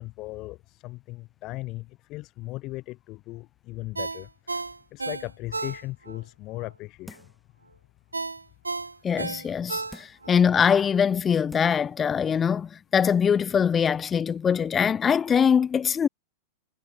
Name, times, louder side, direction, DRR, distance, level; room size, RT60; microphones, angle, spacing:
voice 1, 0.0-7.3, left 19 dB, 40° left, 2.6 m, -38 dB
Ringtone, 3.9-6.2 6.6-6.7 8.1-10.4 10.8-10.9, right 3 dB, 80° right, 1.3 m, -33 dB
sound 1, 7.1-7.5 8.0-8.1 9.9-10.3 11.0-11.1 11.5-11.9 12.3-12.4, left 1 dB, 5° left, 2.3 m, -48 dB
voice 2, 9.0-9.8 10.3-16.1, left 7 dB, 20° left, 0.4 m, -22 dB
figure-of-eight pair, 90°, 0 cm